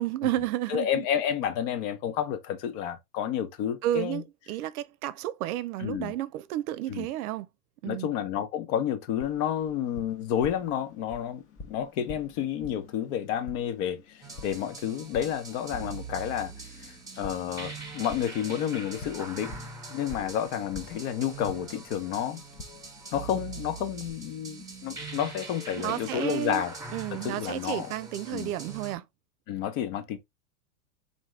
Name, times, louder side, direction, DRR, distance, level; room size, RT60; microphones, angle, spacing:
voice 1, 0.0-1.0 3.8-7.5 7.8-8.1 25.8-26.6 26.9-29.0, right 13 dB, 70° right, 0.6 m, -31 dB
voice 2, 0.7-4.2 5.8-6.1 6.9-7.1 7.8-16.5 16.8-19.5 19.9-22.4 23.1-26.7 27.1-27.9 28.3-28.5 29.5-30.2, left 9 dB, 55° left, 0.9 m, -30 dB
Tap, 9.2-24.1, left 3 dB, 30° left, 0.8 m, -48 dB
sound 1, 14.2-29.0, right 4 dB, 10° right, 1.1 m, -43 dB
3.5 x 2.7 x 3.1 m
hypercardioid pair, 110°, 45 cm